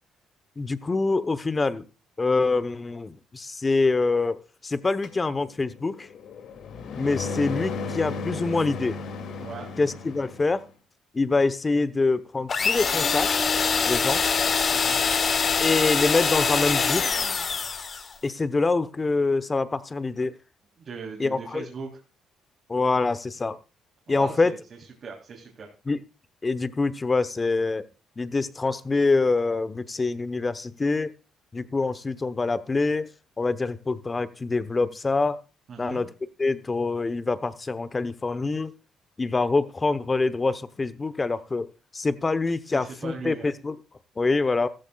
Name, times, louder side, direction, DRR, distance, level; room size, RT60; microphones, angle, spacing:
voice 1, 0.6-1.9 2.2-6.1 6.9-9.0 9.8-10.6 11.1-13.6 13.9-14.2 15.6-17.0 18.2-20.3 21.2-21.7 22.7-23.6 24.1-24.5 25.9-26.0 26.4-27.9 28.2-31.1 31.5-33.1 33.4-35.4 35.8-36.1 36.4-38.7 39.2-43.7 44.2-44.7, left 3 dB, 25° left, 14 dB, 0.9 m, -25 dB
sound 1, 5.0-10.6, left 4 dB, 70° left, 2.4 m, -35 dB
sound 2, 12.5-18.1, left 5 dB, 40° left, 1.3 m, -24 dB
voice 2, 14.7-15.1 20.8-21.9 24.1-24.6 25.0-25.7 35.7-36.0 42.7-43.5, right 5 dB, 50° right, -1 dB, 3.2 m, -39 dB
15.0 x 14.5 x 2.3 m, 0.30 s
cardioid pair, 110°, 0 cm